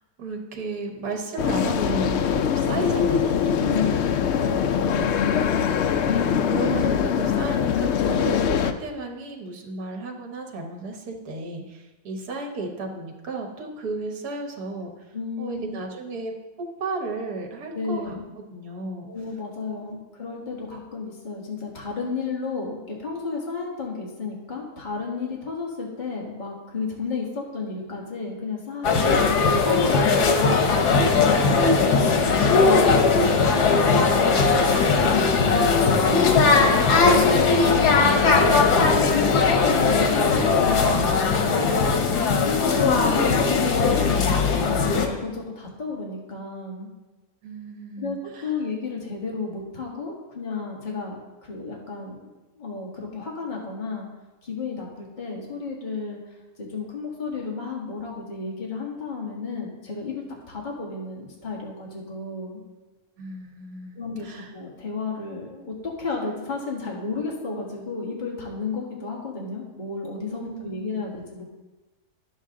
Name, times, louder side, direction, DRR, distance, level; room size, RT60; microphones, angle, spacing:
voice 1, 0.2-4.2 6.0-14.9 15.4-18.2 18.5-19.1 19.7-19.9 31.9-32.4 47.4-48.5 63.2-64.5 70.4-70.7, right 2 dB, 80° right, 2 dB, 1.6 m, -34 dB
sound 1, 1.4-8.7, left 8 dB, 70° left, 0.6 m, -23 dB
voice 2, 3.6-5.3 15.1-15.7 17.7-18.3 19.1-41.7 42.0-46.9 48.0-48.2 48.4-54.1 54.4-56.2 56.6-62.6 63.9-71.4, left 4 dB, 30° left, -2 dB, 1.8 m, -32 dB
sound 2, 28.8-45.1, left 4 dB, 90° left, 1.6 m, -19 dB
10.5 x 7.3 x 3.7 m, 1.1 s
omnidirectional pair, 1.6 m